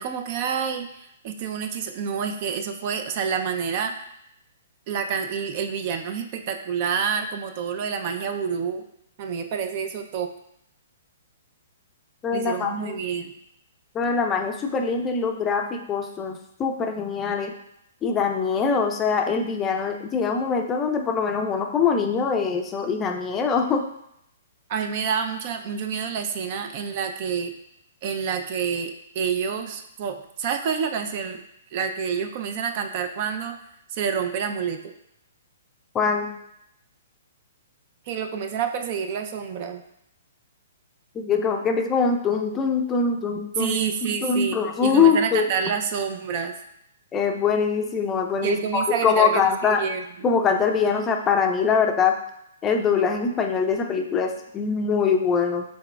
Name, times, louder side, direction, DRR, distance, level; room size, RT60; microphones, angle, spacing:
voice 1, 0.0-3.9 4.9-8.8 9.2-10.3 12.3-13.3 24.7-27.5 28.0-31.4 31.7-33.6 33.9-34.9 38.1-39.8 43.6-46.5 48.4-50.3, right 7 dB, 45° right, 6 dB, 0.4 m, -28 dB
voice 2, 12.2-13.0 13.9-17.5 18.0-23.8 35.9-36.3 41.1-43.8 44.2-45.4 47.1-49.8 50.2-52.1 52.6-55.6, left 5 dB, 20° left, 4 dB, 0.5 m, -23 dB
5.7 x 4.0 x 2.3 m, 0.78 s
hypercardioid pair, 125°, 0 cm